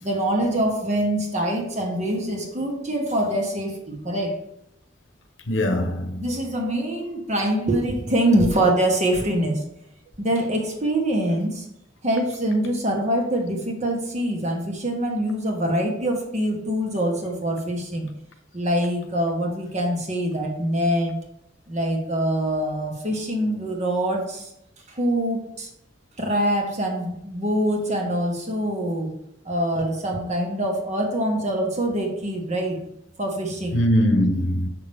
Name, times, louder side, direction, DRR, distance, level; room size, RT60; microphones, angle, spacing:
voice 1, 0.0-4.4 6.2-9.6 10.2-11.7 12.0-18.1 18.5-21.2 21.7-24.5 24.9-25.7 26.2-29.1 29.4-32.9 33.2-33.8, right 1 dB, 40° right, 1.6 m, -24 dB
voice 2, 5.5-6.3 33.7-34.7, equal, 75° left, 1.1 m, -21 dB
7.1 x 6.1 x 3.6 m
head